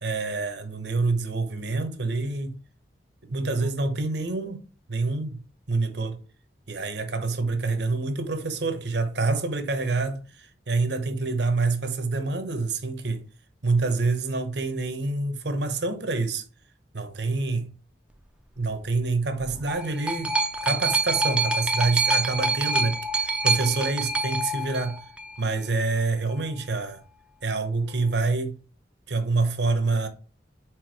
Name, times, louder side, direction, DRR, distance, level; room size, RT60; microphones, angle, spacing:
voice 1, 0.0-2.6 3.2-5.4 5.7-6.2 6.7-13.3 13.6-16.4 16.9-17.7 18.6-20.3 20.6-25.0 25.4-27.0 27.4-28.6 29.1-30.1, right 3 dB, 70° right, 1.0 m, -27 dB
sound 1, 19.4-25.4 26.3-26.4, right 2 dB, 5° right, 0.5 m, -26 dB
4.7 x 4.3 x 4.7 m
head